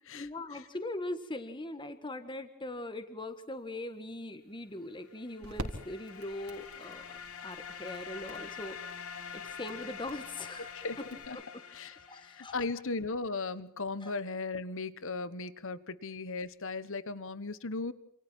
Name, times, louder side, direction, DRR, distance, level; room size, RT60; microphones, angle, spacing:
voice 1, 0.1-8.8 9.3-11.4 12.1-12.5 14.0-14.1, left 2 dB, 20° left, 9 dB, 1.6 m, -41 dB
sound 1, 3.3-11.3, right 1 dB, 75° right, 3.6 m, -48 dB
sound 2, 5.1-12.8, left 6 dB, 75° left, 3.4 m, -46 dB
voice 2, 12.4-17.9, left 3 dB, 60° left, 15 dB, 1.3 m, -36 dB
28.0 x 27.5 x 4.5 m, 0.74 s
head